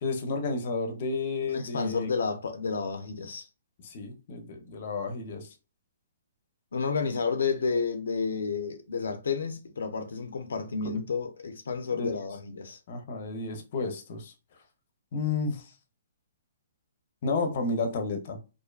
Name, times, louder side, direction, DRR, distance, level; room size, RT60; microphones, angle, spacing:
voice 1, 0.0-2.1 3.8-5.5 11.9-12.1 12.9-14.3 15.1-15.7 17.2-18.4, left 3 dB, 45° left, 0.6 m, -31 dB
voice 2, 1.5-3.5 6.7-12.8, left 5 dB, 85° left, 0.5 m, -31 dB
2.5 x 2.2 x 2.3 m
hypercardioid pair, 155°, 0 cm